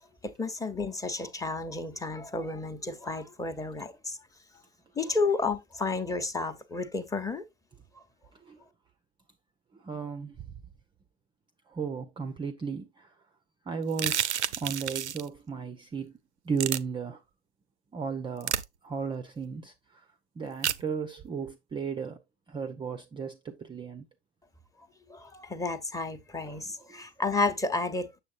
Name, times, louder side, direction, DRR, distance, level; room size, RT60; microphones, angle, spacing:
voice 1, 0.2-4.2 4.9-7.4 7.9-8.0 25.1-28.2, left 3 dB, 10° left, 0.9 m, -31 dB
voice 2, 9.7-10.5 11.7-13.2 13.7-16.1 16.4-17.2 17.9-20.1 20.4-22.2 22.5-24.1 26.5-27.0, right 5 dB, 15° right, 0.6 m, -35 dB
sound 1, 13.9-15.3 16.6-16.8 18.4-18.6 20.6-20.8, right 10 dB, 85° right, 0.6 m, -29 dB
7.4 x 7.0 x 2.5 m
figure-of-eight pair, 85°, 34 cm